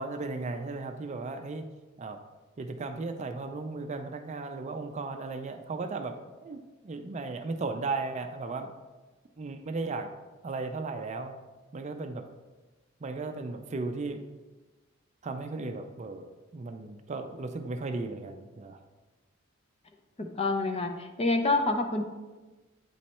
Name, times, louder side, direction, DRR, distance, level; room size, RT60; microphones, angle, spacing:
voice 1, 0.0-1.6 2.0-2.2 2.6-6.2 6.4-8.7 9.4-10.1 10.4-11.3 11.7-12.2 13.0-14.2 15.2-18.8, right 3 dB, 35° right, 7 dB, 0.4 m, -35 dB
voice 2, 20.2-22.0, left 2 dB, 30° left, 4 dB, 0.5 m, -27 dB
8.5 x 3.2 x 4.2 m, 1.2 s
head